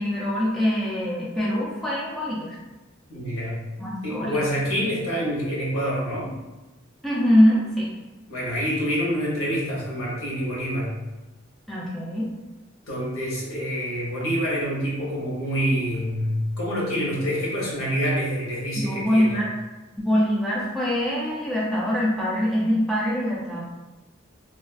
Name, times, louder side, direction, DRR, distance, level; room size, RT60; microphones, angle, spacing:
voice 1, 0.0-2.6 3.8-4.4 7.0-7.9 11.7-12.3 18.8-19.5 20.0-23.6, equal, ahead, -7 dB, 0.4 m, -23 dB
voice 2, 3.1-3.6 4.0-6.3 8.3-10.9 12.9-19.4, equal, 85° left, -5 dB, 0.9 m, -26 dB
2.4 x 2.2 x 2.3 m, 1.1 s
head